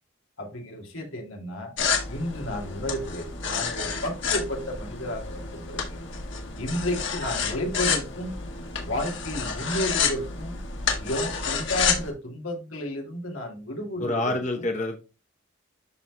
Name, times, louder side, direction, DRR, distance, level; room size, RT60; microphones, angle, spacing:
voice 1, 0.4-1.7 2.1-6.0 6.6-8.4 8.8-10.6 11.0-14.7, left 1 dB, 90° left, 1 dB, 2.4 m, -32 dB
sound 1, 1.8-12.1, left 5 dB, 65° left, 1.8 m, -29 dB
voice 2, 14.0-15.0, left 2 dB, 35° left, 3 dB, 0.8 m, -27 dB
12.5 x 4.1 x 2.2 m, 0.30 s
head